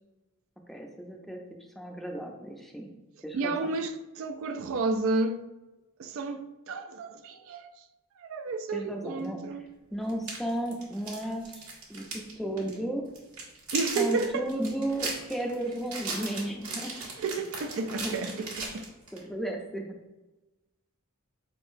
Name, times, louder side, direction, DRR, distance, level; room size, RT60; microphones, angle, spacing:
voice 1, 0.7-1.4 1.8-2.9 3.2-3.7 8.7-9.4 9.9-13.1 14.0-16.9 18.0-18.3 19.1-20.0, right 1 dB, ahead, 0.4 m, -34 dB
voice 2, 3.3-5.5 6.0-7.7 8.2-9.7 13.7-14.5 17.2-18.9, right 3 dB, 65° right, 0.3 m, -31 dB
sound 1, 9.2-9.3 10.1-12.3 12.6-12.7 13.1-19.2, right 3 dB, 85° right, 1.4 m, -37 dB
4.6 x 3.6 x 2.6 m
head